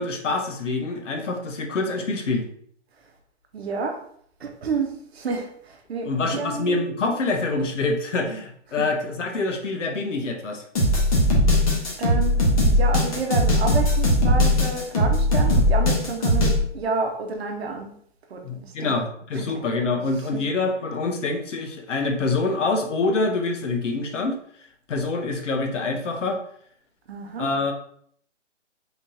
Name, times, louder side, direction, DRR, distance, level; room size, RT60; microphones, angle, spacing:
voice 1, 0.0-2.4 6.1-10.6 18.4-24.4 24.9-26.4 27.4-27.7, left 3 dB, 75° left, 4 dB, 1.0 m, -26 dB
voice 2, 3.5-4.0 4.4-6.8 8.8-8.9 12.0-17.9 18.3-18.9 19.3-19.6 20.3-20.4 27.1-27.5, right 4 dB, 55° right, 3 dB, 0.9 m, -30 dB
sound 1, 10.7-16.6, left 1 dB, 30° left, 1.0 m, -19 dB
3.7 x 2.8 x 3.6 m, 0.63 s
hypercardioid pair, 160°, 37 cm